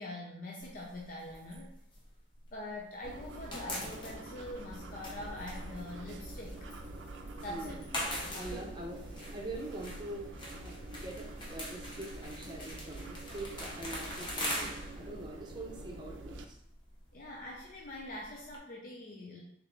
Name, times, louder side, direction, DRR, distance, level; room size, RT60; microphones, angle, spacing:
voice 1, 0.0-1.8 2.5-6.7 7.4-8.6 14.6-14.7 15.0-15.1 17.1-19.4, left 1 dB, 45° left, -2 dB, 0.5 m, -44 dB
sound 1, 0.6-2.9 3.1-18.6, left 1 dB, 25° left, 0.8 m, -43 dB
sound 2, 3.0-16.4, right 2 dB, 85° right, 0.4 m, -46 dB
voice 2, 7.5-7.8 8.3-9.0 9.3-10.2 10.6-16.6, right 2 dB, 25° right, -1 dB, 0.8 m, -44 dB
3.6 x 3.4 x 3.2 m, 0.70 s
head